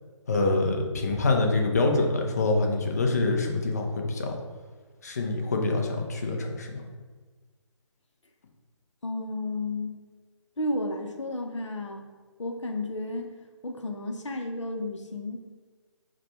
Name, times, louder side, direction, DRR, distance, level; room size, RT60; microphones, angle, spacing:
voice 1, 0.3-4.4 5.0-6.8, left 2 dB, 30° left, 2 dB, 0.5 m, -25 dB
voice 2, 9.0-10.0 10.6-12.0 12.4-13.3 13.6-15.4, left 2 dB, 65° left, 3 dB, 0.7 m, -32 dB
4.8 x 2.3 x 4.3 m, 1.4 s
figure-of-eight pair, 150°, 16 cm